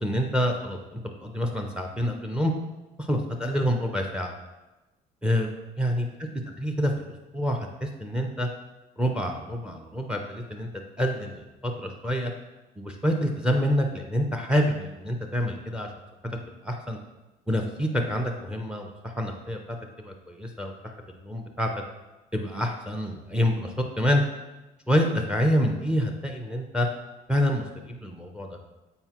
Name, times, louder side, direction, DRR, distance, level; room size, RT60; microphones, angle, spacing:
voice 1, 0.0-2.5 3.0-4.3 5.2-5.5 5.8-6.1 6.6-6.9 7.3-8.5 9.0-10.7 11.0-12.3 12.8-15.9 16.6-17.0 17.5-21.7 22.3-24.2 24.9-26.9 27.3-28.6, equal, 5° right, 3 dB, 0.7 m, -27 dB
7.8 x 4.3 x 3.0 m, 1.1 s
cardioid pair, 110°, 17 cm